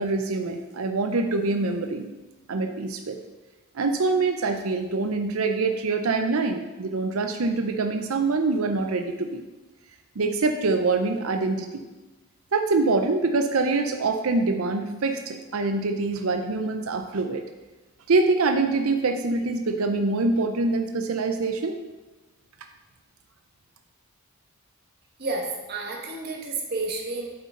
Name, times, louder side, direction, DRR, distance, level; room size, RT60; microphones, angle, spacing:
voice 1, 0.0-2.1 2.5-3.2 3.7-9.4 10.2-11.9 12.5-17.4 18.1-21.8, right 3 dB, 70° right, 6 dB, 0.6 m, -25 dB
voice 2, 25.2-27.3, right 3 dB, 45° right, 0 dB, 1.5 m, -30 dB
8.5 x 8.0 x 3.8 m, 1.2 s
head